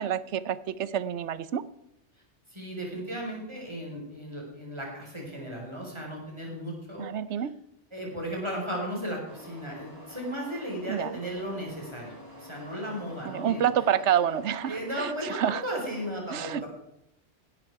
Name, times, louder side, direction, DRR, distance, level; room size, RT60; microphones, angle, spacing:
voice 1, 0.0-1.6 7.0-7.5 10.9-11.1 13.3-15.6 16.3-16.6, right 9 dB, 70° right, 17 dB, 1.0 m, -28 dB
voice 2, 2.5-7.5 7.9-13.6 14.6-16.7, equal, 20° right, -1 dB, 4.8 m, -35 dB
sound 1, 9.2-16.1, left 1 dB, 55° right, 5.3 m, -48 dB
17.0 x 12.0 x 4.7 m, 0.82 s
omnidirectional pair, 1.2 m